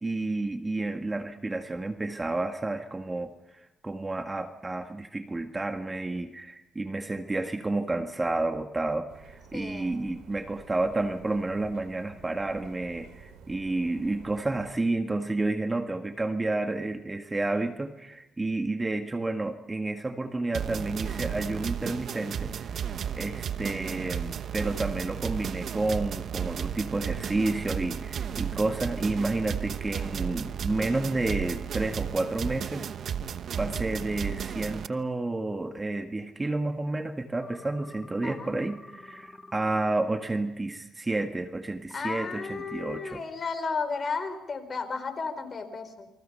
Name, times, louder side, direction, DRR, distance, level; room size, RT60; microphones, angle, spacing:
voice 1, 0.0-3.3 3.8-22.7 23.1-32.9 33.6-43.2, right 2 dB, 20° right, 6 dB, 1.7 m, -30 dB
sound 1, 9.1-14.7, right 5 dB, 90° right, 3.6 m, -51 dB
voice 2, 9.5-10.0 38.2-38.5 41.9-46.1, left 4 dB, 40° left, 8 dB, 4.5 m, -33 dB
sound 2, 20.5-34.9, right 8 dB, 60° right, 1.0 m, -34 dB
sound 3, 37.4-39.9, left 2 dB, 25° left, 2.6 m, -48 dB
29.0 x 23.5 x 5.7 m, 0.96 s
cardioid pair, 90°, 0 cm